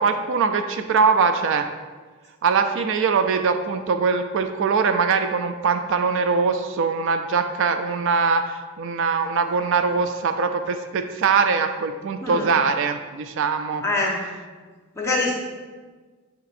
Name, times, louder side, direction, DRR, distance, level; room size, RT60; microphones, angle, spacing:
voice 1, 0.0-1.6 2.4-13.8, right 5 dB, 55° right, 8 dB, 0.3 m, -22 dB
voice 2, 12.2-12.6 13.8-14.2 14.9-15.3, left 2 dB, 10° left, -4 dB, 1.0 m, -24 dB
7.0 x 5.8 x 2.5 m, 1.4 s
head